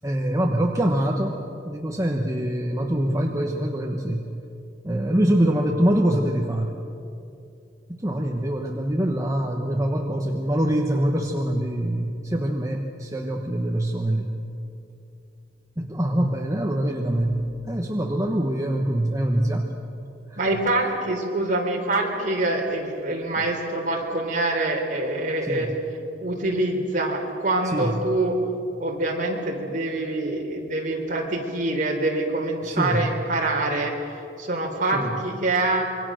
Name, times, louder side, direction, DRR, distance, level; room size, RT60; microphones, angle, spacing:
voice 1, 0.0-4.3 4.8-6.7 7.9-14.3 15.8-19.7 20.3-20.4 25.4-25.7 27.7-28.0 32.6-33.1 34.9-35.1, right 1 dB, 20° right, 1 dB, 1.2 m, -24 dB
voice 2, 20.4-25.7 26.2-28.4 28.8-33.9 34.4-35.8, right 2 dB, 45° right, 1 dB, 3.7 m, -25 dB
26.5 x 23.5 x 6.4 m, 2.7 s
head